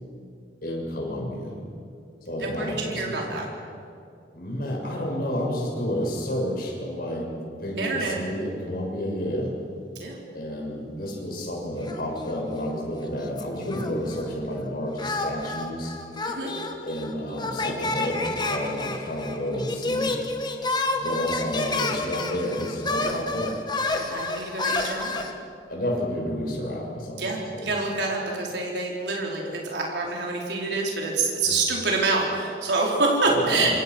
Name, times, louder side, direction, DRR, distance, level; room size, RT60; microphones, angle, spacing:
voice 1, 0.6-1.6 2.2-3.5 4.3-7.3 7.6-9.5 10.3-16.0 16.8-20.1 21.0-23.5 25.7-27.7 31.4-31.6 33.2-33.8, equal, 55° left, -1 dB, 7.2 m, -30 dB
voice 2, 2.4-3.4 7.8-8.1 9.9-10.2 16.2-16.5 17.6-17.7 23.0-23.1 24.0-25.2 27.2-33.8, right 3 dB, 80° right, -2 dB, 4.7 m, -26 dB
sound 1, 11.9-12.7 13.0-14.3 15.0-25.3, left 2 dB, 25° left, 2.0 m, -30 dB
27.0 x 26.5 x 6.4 m, 2.4 s
head